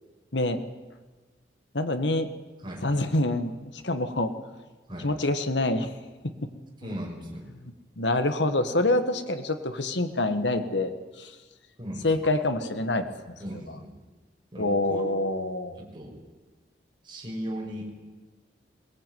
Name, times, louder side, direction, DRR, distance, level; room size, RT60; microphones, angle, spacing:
voice 1, 1.7-2.3 2.8-3.5 3.8-4.3 5.0-5.9 8.0-10.9 11.2-11.3 12.0-13.4 14.6-15.8, left 2 dB, 90° left, 8 dB, 1.8 m, -26 dB
voice 2, 6.8-7.5 11.8-12.3 13.4-13.9 14.5-15.0 15.8-16.1 17.0-17.9, equal, 25° right, -1 dB, 6.0 m, -37 dB
22.0 x 18.5 x 9.4 m, 1.3 s
head